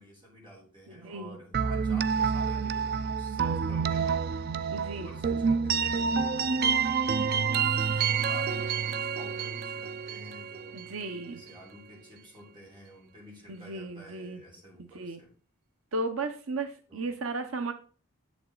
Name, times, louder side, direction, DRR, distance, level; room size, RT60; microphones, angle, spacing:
voice 1, 0.0-4.2 4.9-6.4 7.4-10.8 11.3-15.3 16.9-17.2, equal, 20° right, -2 dB, 3.8 m, -50 dB
voice 2, 0.9-1.4 4.7-5.1 10.7-11.4 13.5-14.4 14.8-15.2 15.9-17.7, right 2 dB, 75° right, 7 dB, 0.8 m, -35 dB
sound 1, 1.5-11.3, right 6 dB, 45° right, 0.4 m, -28 dB
10.5 x 7.1 x 3.8 m, 0.41 s
head